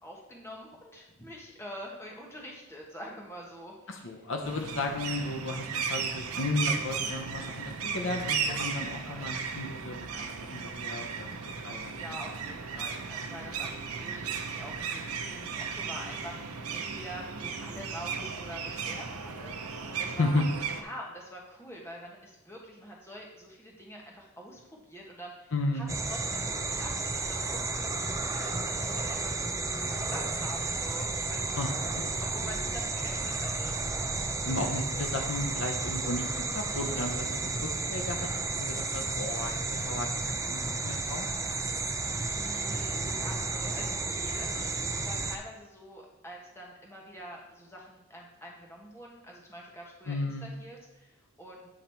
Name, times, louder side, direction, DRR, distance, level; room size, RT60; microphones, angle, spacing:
voice 1, 0.0-4.1 8.5-9.3 12.0-20.4 20.8-29.4 29.8-31.5 32.2-33.7 34.5-34.8 42.3-51.7, equal, 10° left, -2 dB, 1.2 m, -46 dB
voice 2, 3.9-12.2 20.2-20.5 25.5-25.9 31.5-32.0 34.4-36.3 36.5-38.3 38.5-41.3 50.1-50.5, left 2 dB, 60° left, 3 dB, 0.7 m, -34 dB
sound 1, 4.4-20.8, right 6 dB, 85° right, 0.7 m, -35 dB
sound 2, 25.9-45.4, right 3 dB, 15° right, 0.4 m, -32 dB
8.7 x 4.0 x 4.4 m, 0.89 s
head